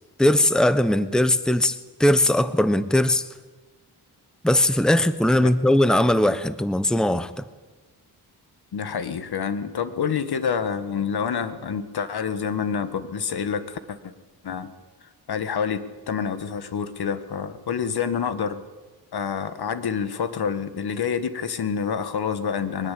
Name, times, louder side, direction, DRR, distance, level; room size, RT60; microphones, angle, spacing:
voice 1, 0.2-3.3 4.4-7.4, left 1 dB, ahead, 13 dB, 1.2 m, -20 dB
voice 2, 8.7-14.1 14.4-14.7 15.3-18.6 19.1-22.9, left 7 dB, 70° left, 11 dB, 1.9 m, -27 dB
22.5 x 20.0 x 8.7 m, 1.2 s
cardioid pair, 75°, 40 cm